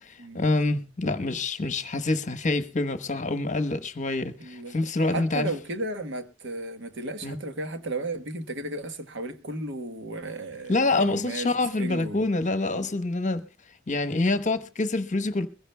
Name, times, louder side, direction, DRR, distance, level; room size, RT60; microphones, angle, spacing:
voice 1, 0.0-5.5 7.2-7.4 10.7-13.4 13.9-15.5, left 2 dB, 40° left, 1.0 m, -26 dB
voice 2, 4.4-11.5 11.8-12.2 12.7-12.9, right 2 dB, 60° right, 1.3 m, -34 dB
22.0 x 16.0 x 2.2 m
head